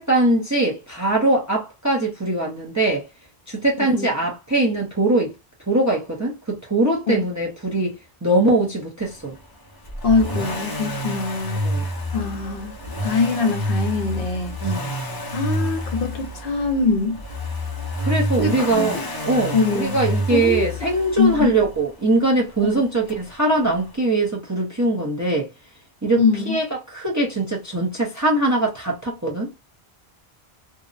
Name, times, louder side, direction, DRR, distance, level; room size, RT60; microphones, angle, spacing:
voice 1, 0.0-3.1 3.5-5.3 5.7-9.4 11.6-11.8 14.6-15.0 18.0-25.5 26.0-29.5, right 2 dB, 20° right, 0.5 m, -22 dB
voice 2, 3.8-4.1 7.1-7.3 10.0-11.7 12.1-12.8 13.0-14.6 15.3-17.2 18.4-19.0 19.5-20.0 20.3-20.9 21.2-21.5 26.1-26.6, left 4 dB, 60° left, 0.8 m, -23 dB
Accelerating revving vroom, 9.9-21.8 23.1-23.2, equal, 30° left, 0.5 m, -28 dB
2.7 x 2.0 x 2.3 m
omnidirectional pair, 1.1 m